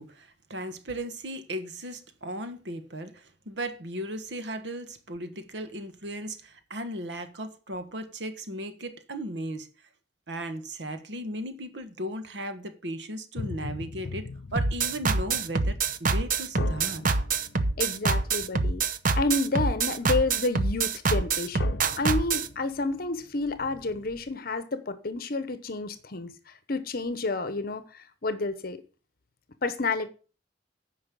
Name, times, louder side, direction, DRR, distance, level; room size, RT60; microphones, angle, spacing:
voice 1, 0.0-9.7 10.3-17.0, right 1 dB, 85° right, 1.3 m, -36 dB
sound 1, 13.4-19.5 19.8-19.9 20.5-20.6 20.9-21.1 21.4-24.4, left 3 dB, 85° left, 0.8 m, -42 dB
sound 2, 14.6-22.5, right 4 dB, 50° right, 0.8 m, -25 dB
voice 2, 17.8-18.8 19.2-28.8 29.6-30.1, left 3 dB, 55° left, 0.9 m, -30 dB
9.5 x 5.5 x 6.8 m
head